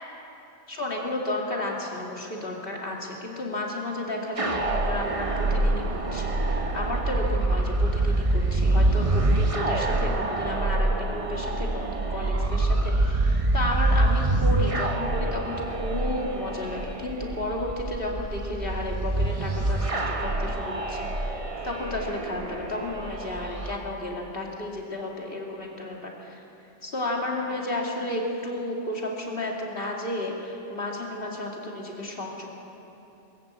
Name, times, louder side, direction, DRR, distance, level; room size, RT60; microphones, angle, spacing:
voice 1, 0.7-21.3 21.6-26.4 26.8-32.5, left 1 dB, 45° left, -1 dB, 2.9 m, -32 dB
sound 1, 4.4-23.8, right 2 dB, 30° right, 0.9 m, -26 dB
22.5 x 14.0 x 8.2 m, 2.9 s
omnidirectional pair, 1.3 m